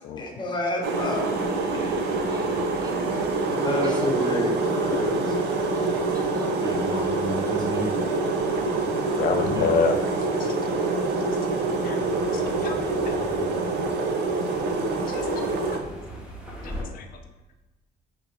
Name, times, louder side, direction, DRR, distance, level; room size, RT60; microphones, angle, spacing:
voice 1, 0.2-1.2 1.7-2.0 3.5-5.3, left 2 dB, 25° left, 1 dB, 0.9 m, -29 dB
sound 1, 0.8-15.8, right 3 dB, 85° right, 0.6 m, -26 dB
sound 2, 0.9-16.8, equal, 5° right, 1.3 m, -45 dB
voice 2, 3.3-4.3 5.6-8.1 8.9-10.0, right 3 dB, 20° right, 4 dB, 0.3 m, -36 dB
voice 3, 9.2-10.0 10.4-10.5 11.8-12.0 12.3-12.8 13.1-13.2 15.1-15.4 15.7-15.8 16.6-17.1, left 5 dB, 60° left, 5 dB, 0.4 m, -27 dB
6.8 x 3.1 x 2.6 m, 1.1 s
cardioid pair, 110°, 17 cm